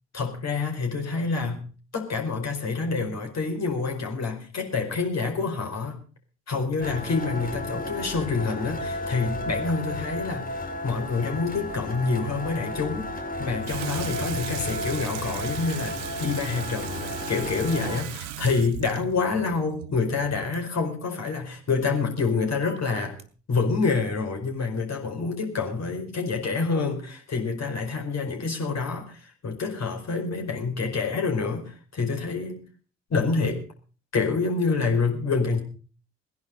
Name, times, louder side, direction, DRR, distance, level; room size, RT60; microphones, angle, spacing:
voice 1, 0.1-1.7 1.9-6.0 6.5-23.2 23.5-32.6 33.1-33.6 34.1-35.6, left 4 dB, 45° left, 2 dB, 5.0 m, -27 dB
sound 1, 6.8-18.0, left 2 dB, 25° left, 2.5 m, -33 dB
Water tap faucet / Sink (filling or washing), 13.6-20.7, right 12 dB, 75° right, 1.0 m, -37 dB
sound 2, 17.7-18.4 20.5-20.6 22.6-23.2, right 2 dB, 20° right, 2.9 m, -42 dB
19.5 x 11.0 x 5.4 m, 0.38 s
figure-of-eight pair, 45°, 37 cm